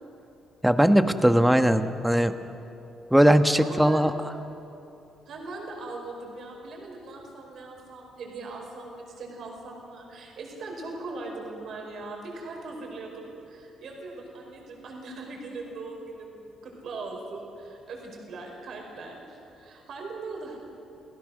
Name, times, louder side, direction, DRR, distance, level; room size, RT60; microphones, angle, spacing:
voice 1, 0.6-2.3 3.1-4.1, equal, 5° right, 9 dB, 1.2 m, -19 dB
voice 2, 3.6-4.1 5.2-16.4 16.6-20.6, right 3 dB, 65° right, 0 dB, 4.9 m, -40 dB
27.5 x 16.5 x 6.4 m, 3.0 s
cardioid pair, 90°, 0 cm